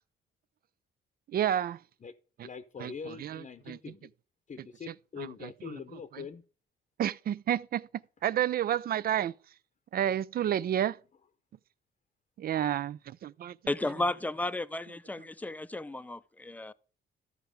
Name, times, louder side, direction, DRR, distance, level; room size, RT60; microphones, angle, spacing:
voice 1, 1.3-1.8 2.4-2.5 2.8-3.8 5.2-5.7 7.0-7.9 8.2-9.3 9.9-11.0 12.4-13.6, right 10 dB, 50° right, 0.4 m, -30 dB
voice 2, 2.4-4.1 4.5-6.4, left 6 dB, 35° left, 0.8 m, -43 dB
voice 3, 13.7-16.7, left 2 dB, 10° left, 0.5 m, -33 dB
13.5 x 4.7 x 5.0 m
cardioid pair, 90°, 20 cm